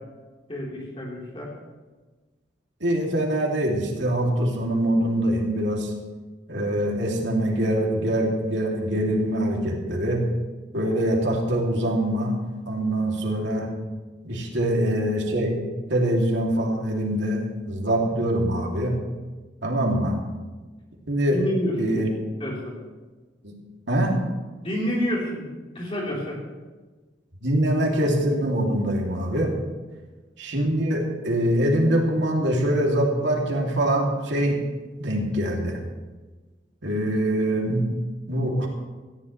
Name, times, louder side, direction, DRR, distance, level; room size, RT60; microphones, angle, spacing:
voice 1, 0.5-1.5 21.3-22.0 22.4-22.7 24.6-25.5 25.7-26.4, equal, 30° left, -4 dB, 3.8 m, -28 dB
voice 2, 2.8-5.9 6.5-10.2 10.7-12.3 12.7-13.7 14.2-15.6 15.9-17.4 17.7-19.0 19.6-20.2 21.1-21.4 21.8-22.1 23.4-23.6 23.9-24.2 27.4-29.5 30.4-34.6 35.0-35.8 36.8-37.9 38.3-38.7, right 1 dB, 80° right, -1 dB, 2.7 m, -24 dB
18.5 x 14.5 x 3.3 m, 1.3 s
head